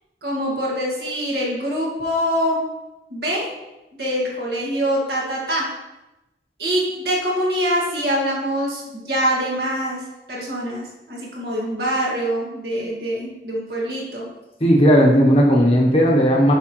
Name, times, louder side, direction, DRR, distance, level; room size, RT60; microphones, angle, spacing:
voice 1, 0.2-2.6 3.1-3.5 4.0-5.7 6.6-10.0 10.3-14.3, equal, 65° right, -3 dB, 2.0 m, -24 dB
voice 2, 14.6-16.5, equal, 35° left, -1 dB, 0.9 m, -15 dB
7.6 x 5.5 x 3.1 m, 0.99 s
head